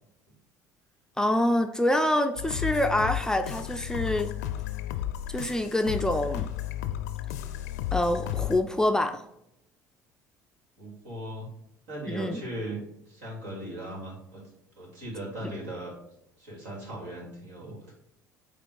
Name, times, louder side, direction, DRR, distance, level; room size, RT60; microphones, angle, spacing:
voice 1, 1.2-4.3 5.3-6.5 7.9-9.2 12.1-12.4 15.4-15.5, left 1 dB, 5° left, 6 dB, 0.5 m, -26 dB
sound 1, 2.4-8.6, left 12 dB, 70° left, 0.5 m, -33 dB
voice 2, 10.8-11.5 11.9-12.8 13.1-14.4 14.8-15.9 16.4-17.9, right 1 dB, 65° right, -3 dB, 2.7 m, -38 dB
8.4 x 3.1 x 4.7 m, 0.80 s
figure-of-eight pair, 60°, 9 cm